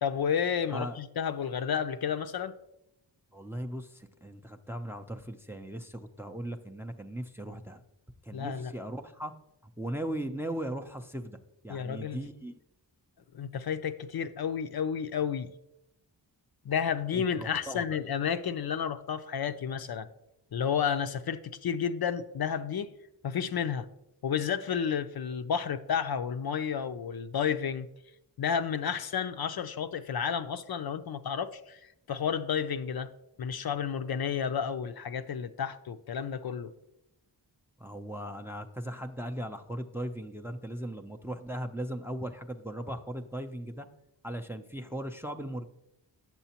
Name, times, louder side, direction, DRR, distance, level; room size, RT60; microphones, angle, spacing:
voice 1, 0.0-2.5 8.3-8.7 11.7-12.2 13.3-15.5 16.7-20.1 20.5-22.9 23.2-23.9 24.2-27.9 28.4-33.1 33.4-36.7, left 7 dB, 55° left, 0.5 m, -31 dB
voice 2, 3.3-7.8 8.2-9.3 9.6-11.4 11.6-12.6 17.1-17.8 37.8-43.9 44.2-45.7, right 1 dB, 5° right, 0.4 m, -38 dB
8.1 x 6.9 x 2.9 m
cardioid pair, 50°, 44 cm